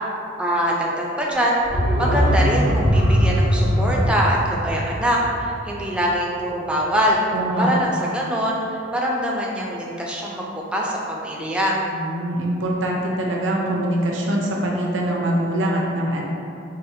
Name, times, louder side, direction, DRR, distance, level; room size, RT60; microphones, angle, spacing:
voice 1, 0.4-1.6 2.0-7.2 7.6-11.8, equal, 5° right, -3 dB, 0.4 m, -23 dB
sound 1, 1.6-6.4 6.7-6.8, equal, 75° left, 0.8 m, -21 dB
voice 2, 7.3-7.7 11.9-16.2, right 1 dB, 85° right, -2 dB, 0.6 m, -23 dB
4.9 x 2.4 x 2.7 m, 2.6 s
head